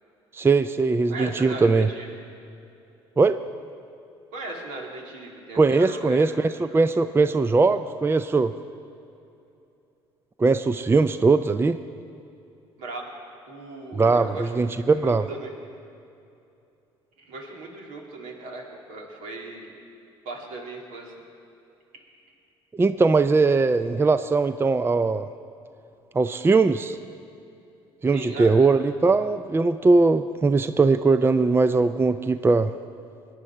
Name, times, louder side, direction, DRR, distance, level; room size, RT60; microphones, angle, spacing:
voice 1, 0.3-1.9 3.2-3.4 5.6-8.5 10.4-11.8 13.9-15.3 22.7-25.3 26.1-27.0 28.0-32.7, right 3 dB, 15° right, 12 dB, 0.4 m, -20 dB
voice 2, 1.1-2.1 4.3-6.2 6.5-6.8 12.8-13.1 13.5-15.5 17.2-19.7 20.2-21.1 28.1-28.7, right 2 dB, 70° right, 0 dB, 2.5 m, -37 dB
22.0 x 9.5 x 4.4 m, 2.7 s
hypercardioid pair, 60°, 13 cm